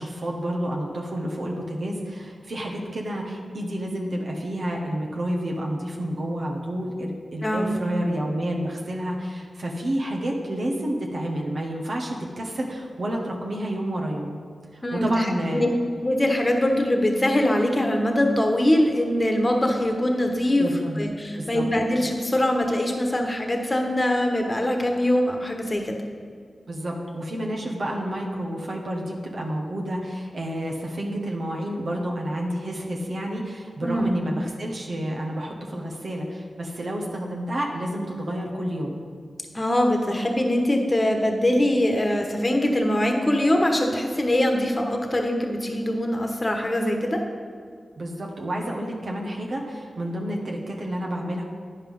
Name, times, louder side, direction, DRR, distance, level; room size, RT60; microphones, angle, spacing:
voice 1, 0.0-14.4 14.7-15.7 20.6-21.0 21.4-21.7 26.7-39.0 48.0-51.4, right 1 dB, 65° right, -1 dB, 1.4 m, -29 dB
voice 2, 7.4-7.8 14.8-15.2 15.5-15.7 16.0-20.7 21.0-26.0 33.8-34.1 39.5-47.2, left 1 dB, 25° left, 3 dB, 1.3 m, -22 dB
9.7 x 5.6 x 5.5 m, 2.1 s
cardioid pair, 65°, 0 cm